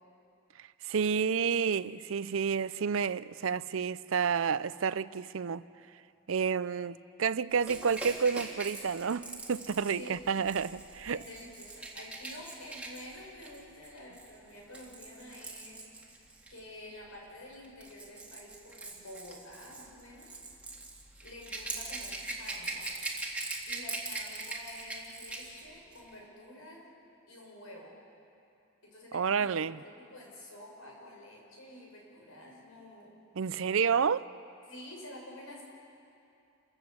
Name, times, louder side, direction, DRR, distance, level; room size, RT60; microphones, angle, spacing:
voice 1, 0.8-5.6 6.3-11.2 29.1-29.8 33.4-34.2, right 6 dB, 70° right, 0.5 m, -30 dB
Rattle / Rattle (instrument), 7.6-16.6 17.5-25.6 25.9-26.1, right 2 dB, 5° right, 1.9 m, -42 dB
voice 2, 9.8-10.2 11.1-15.8 16.5-20.3 21.2-22.9 23.6-26.9 27.3-28.0 28.8-33.2 34.7-35.6, left 1 dB, 85° left, 6.2 m, -49 dB
29.0 x 14.0 x 7.9 m
head